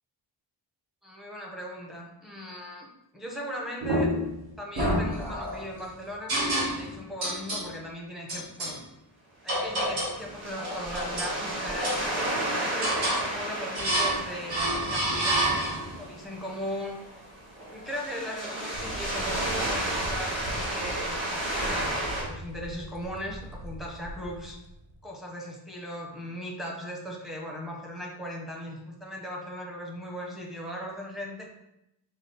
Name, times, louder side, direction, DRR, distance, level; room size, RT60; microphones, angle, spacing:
voice 1, 1.0-2.9 3.1-4.1 4.6-6.3 6.7-8.8 9.4-11.9 12.4-17.0 17.7-24.6 25.0-31.5, equal, ahead, -2 dB, 0.6 m, -38 dB
sound 1, 3.8-4.3 4.8-5.6 6.3-6.9 7.2-7.7 8.3-8.8 9.5-10.2 10.6-11.4 11.8-12.4 12.8-13.3 13.8-14.2 14.5-16.0, right 1 dB, 55° right, 1.3 m, -28 dB
sound 2, 9.5-22.2, right 1 dB, 25° right, 1.5 m, -33 dB
sound 3, 18.7-25.1, right 1 dB, 80° right, 0.7 m, -42 dB
5.3 x 2.1 x 3.8 m, 0.85 s
wide cardioid pair, 165°, 45 cm